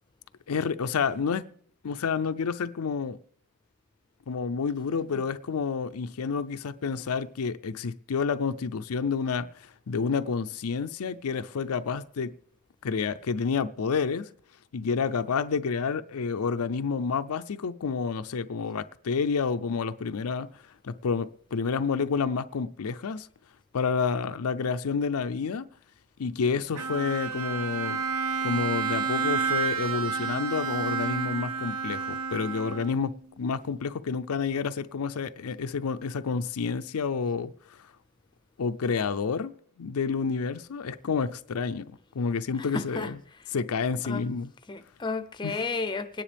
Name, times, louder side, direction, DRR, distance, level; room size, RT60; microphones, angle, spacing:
voice 1, 0.5-1.5 1.8-3.2 4.3-12.3 12.8-14.3 14.7-20.5 20.8-23.3 23.7-25.7 26.2-28.0 28.4-37.9 38.6-43.2 43.5-44.5 45.4-45.7, left 5 dB, 80° left, 0.5 m, -29 dB
Bowed string instrument, 26.7-33.2, right 5 dB, 80° right, 1.0 m, -30 dB
voice 2, 42.6-43.1 44.0-44.2 44.7-46.2, left 3 dB, 20° left, 0.6 m, -32 dB
24.5 x 10.0 x 3.4 m
head